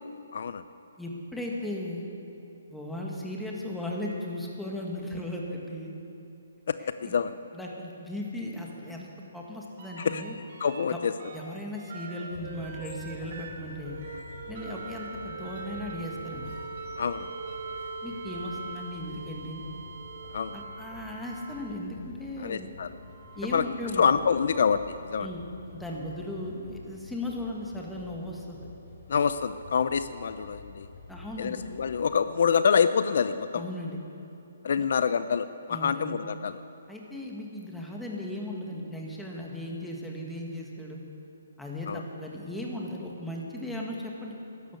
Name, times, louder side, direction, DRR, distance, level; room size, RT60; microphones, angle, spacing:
voice 1, 0.3-0.6 6.7-7.4 10.0-10.2 10.6-11.1 17.0-17.3 20.3-20.5 22.4-22.9 23.4-23.6 24.0-25.3 29.1-30.9 31.4-33.6 34.6-36.6 41.9-42.0, left 6 dB, 60° left, 12 dB, 0.5 m, -26 dB
voice 2, 1.0-2.1 2.7-6.0 6.8-7.2 7.5-10.4 10.9-11.0 11.3-14.0 14.5-16.5 18.0-19.7 20.5-22.7 23.3-24.0 25.2-25.4 25.7-28.6 31.1-31.6 33.5-34.0 34.8-34.9 35.7-36.1 36.9-41.0 41.6-44.3, left 1 dB, ahead, -2 dB, 1.7 m, -37 dB
sound 1, 9.8-10.9 11.2-22.0 22.8-24.4 26.1-26.2, right 4 dB, 50° right, 2.8 m, -42 dB
sound 2, 12.3-32.2, left 3 dB, 35° left, 3.1 m, -49 dB
13.0 x 11.5 x 8.3 m, 2.7 s
hypercardioid pair, 160°, 0 cm